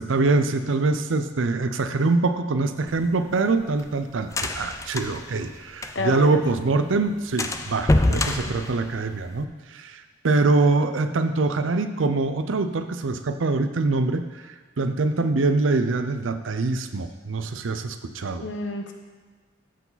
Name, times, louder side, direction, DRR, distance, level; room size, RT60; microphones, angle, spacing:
voice 1, 0.0-18.5, right 3 dB, 80° right, 9 dB, 0.6 m, -24 dB
sound 1, 2.9-6.3 6.6-6.7 7.0-7.1 7.4-9.4, left 2 dB, 15° left, 0.4 m, -26 dB
voice 2, 5.9-6.4 8.2-8.4 18.4-18.9, left 2 dB, 70° left, 4 dB, 0.9 m, -30 dB
14.0 x 4.7 x 4.0 m, 1.4 s
head